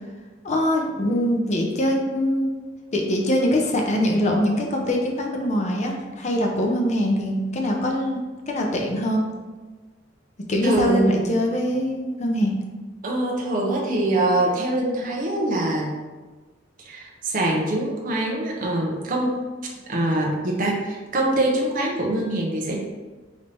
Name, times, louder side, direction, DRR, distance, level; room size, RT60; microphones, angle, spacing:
voice 1, 0.4-2.5 2.9-8.2 8.5-9.2 10.5-12.5, equal, 40° left, 1 dB, 0.6 m, -23 dB
voice 2, 10.6-11.4 13.0-15.9 16.8-19.4 19.9-22.8, right 1 dB, 45° right, -2 dB, 0.7 m, -24 dB
5.2 x 2.7 x 3.3 m, 1.3 s
head